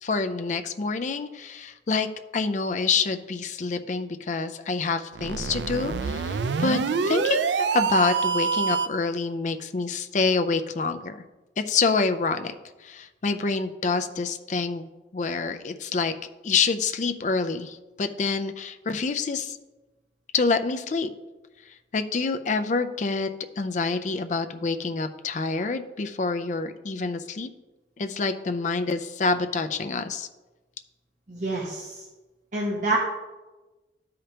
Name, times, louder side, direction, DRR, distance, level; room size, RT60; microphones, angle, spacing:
voice 1, 0.0-2.1 2.3-11.2 11.6-12.5 12.8-16.1 16.4-19.6 20.3-21.1 21.9-23.3 23.6-27.5 28.0-30.3, left 4 dB, 45° left, 9 dB, 0.4 m, -27 dB
sound 1, 5.1-9.1, right 5 dB, 80° right, 0.4 m, -26 dB
voice 2, 31.3-32.0 32.5-33.0, right 2 dB, 45° right, -3 dB, 1.0 m, -27 dB
12.5 x 5.0 x 2.9 m, 1.1 s
head